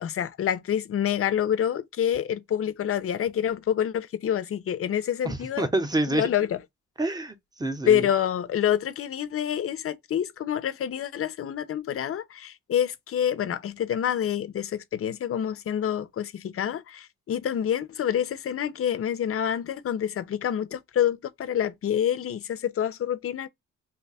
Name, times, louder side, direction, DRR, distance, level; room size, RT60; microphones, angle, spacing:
voice 1, 0.0-5.7 6.1-6.6 7.9-23.5, left 9 dB, 50° left, 0.6 m, -27 dB
voice 2, 5.2-6.2 7.0-8.1, right 2 dB, 15° right, 0.8 m, -27 dB
2.8 x 2.2 x 4.1 m
cardioid pair, 90°, 30 cm